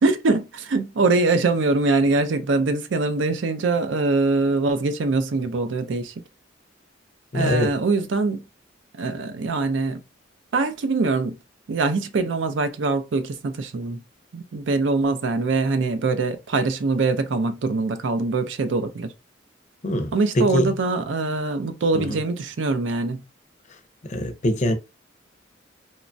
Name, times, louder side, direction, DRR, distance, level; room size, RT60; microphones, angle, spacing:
voice 1, 0.0-6.1 7.3-8.4 9.0-10.0 10.5-11.4 11.7-14.0 14.3-19.1 20.1-23.2, right 3 dB, 70° right, 0.5 m, -23 dB
voice 2, 7.3-7.7 19.8-20.7 21.9-22.2 24.1-24.7, left 1 dB, 40° left, 0.5 m, -23 dB
3.0 x 2.2 x 2.5 m
head